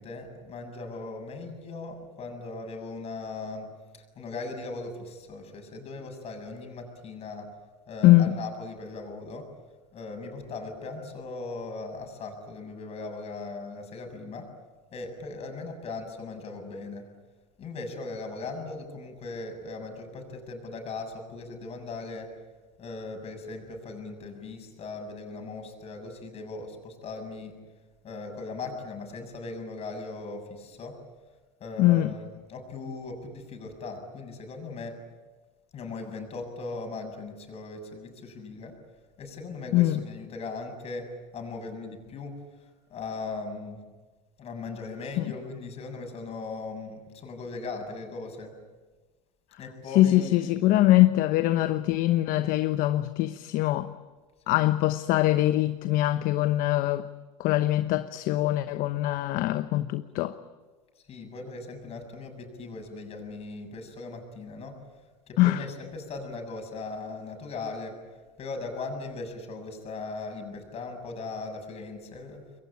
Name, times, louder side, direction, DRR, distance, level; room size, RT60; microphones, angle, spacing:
voice 1, 0.0-7.5 7.9-9.5 9.9-14.5 14.9-17.1 17.6-22.4 22.8-27.6 28.0-31.0 31.6-35.0 35.7-38.8 39.2-43.8 44.4-48.5 49.6-50.9 54.6-54.7 61.0-64.8 65.3-68.0 68.4-72.4, left 3 dB, 40° left, 7.2 m, -39 dB
voice 2, 8.0-8.3 31.8-32.1 39.7-40.0 45.2-45.3 50.0-53.9 54.5-57.1 57.4-60.3 65.4-65.6, left 15 dB, 55° left, 1.0 m, -23 dB
27.5 x 22.5 x 8.8 m
supercardioid pair, 105°, 17 cm